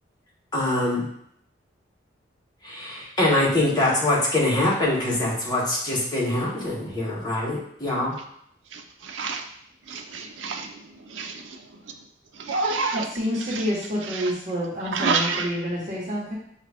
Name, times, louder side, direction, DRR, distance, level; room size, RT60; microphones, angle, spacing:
voice 1, 0.5-1.0 2.6-8.1, left 1 dB, 20° left, -5 dB, 1.1 m, -24 dB
voice 2, 8.7-9.4 9.9-10.7 11.1-11.3 12.4-13.0 14.9-15.5, right 4 dB, 90° right, 5 dB, 0.5 m, -27 dB
voice 3, 12.9-16.4, equal, 40° right, -5 dB, 1.1 m, -28 dB
5.0 x 2.4 x 3.3 m, 0.70 s
head